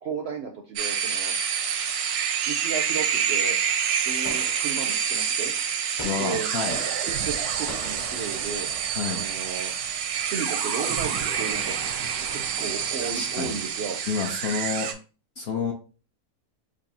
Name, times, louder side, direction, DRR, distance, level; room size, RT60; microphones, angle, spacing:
voice 1, 0.0-1.3 2.3-3.6 4.0-5.5 6.2-6.5 7.0-8.7 9.1-9.7 10.2-11.8 12.3-14.0, right 5 dB, 65° right, 3 dB, 0.6 m, -34 dB
sound 1, 0.8-14.9, right 7 dB, 85° right, 1.1 m, -27 dB
Gunshot gunfire, 4.3-5.3 6.0-8.8, left 1 dB, 30° left, 0.7 m, -42 dB
voice 2, 6.0-6.8 9.0-9.2 13.0-13.6 14.1-14.9 15.4-15.7, left 5 dB, 65° left, 1 dB, 0.7 m, -29 dB
4.6 x 2.5 x 2.7 m, 0.36 s
omnidirectional pair, 1.6 m